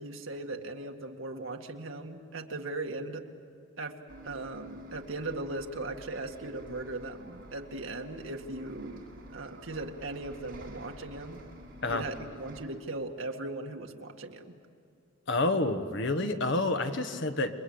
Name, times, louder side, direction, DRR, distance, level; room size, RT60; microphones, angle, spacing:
voice 1, 0.0-3.2 3.8-4.0 4.2-11.4 11.9-14.5, right 2 dB, 70° right, 3 dB, 1.9 m, -38 dB
Bus, 4.1-12.6, equal, 45° right, 7.6 m, -49 dB
voice 2, 15.3-17.5, left 2 dB, 60° left, 7 dB, 1.4 m, -28 dB
28.5 x 23.0 x 8.6 m, 2.4 s
head